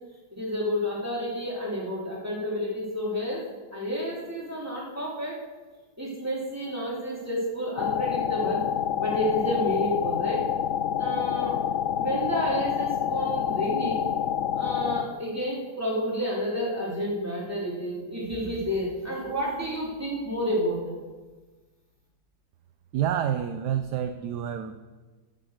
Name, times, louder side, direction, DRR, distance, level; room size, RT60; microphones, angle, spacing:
voice 1, 0.3-3.4 3.7-5.4 6.0-8.7 9.0-10.5 10.9-11.5 11.9-14.0 14.5-21.0, equal, 10° right, -5 dB, 3.2 m, -30 dB
sound 1, 7.8-15.0, left 9 dB, 80° left, 0.6 m, -27 dB
voice 2, 22.9-24.9, right 9 dB, 70° right, 9 dB, 1.1 m, -28 dB
14.5 x 6.6 x 6.5 m, 1.3 s
omnidirectional pair, 2.1 m